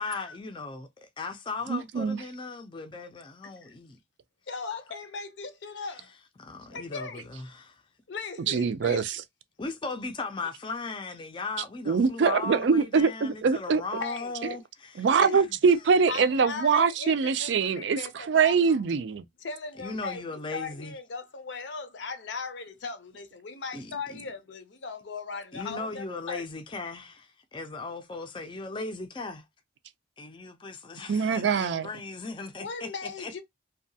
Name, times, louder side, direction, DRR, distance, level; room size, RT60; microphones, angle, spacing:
voice 1, 0.0-4.0 6.4-7.8 9.6-15.1 15.3-15.4 19.8-20.9 23.7-24.2 25.5-29.4 30.2-33.3, left 3 dB, 25° left, 0.4 m, -37 dB
voice 2, 1.7-2.2 8.5-9.2 11.9-13.8 15.0-18.0 18.3-19.2 31.1-31.9, right 5 dB, 70° right, 0.4 m, -23 dB
voice 3, 4.5-6.1 6.7-7.3 8.1-9.0 14.0-14.3 15.2-15.3 16.1-18.8 19.4-26.4 32.6-33.4, left 4 dB, 70° left, 0.6 m, -38 dB
2.7 x 2.2 x 2.7 m
head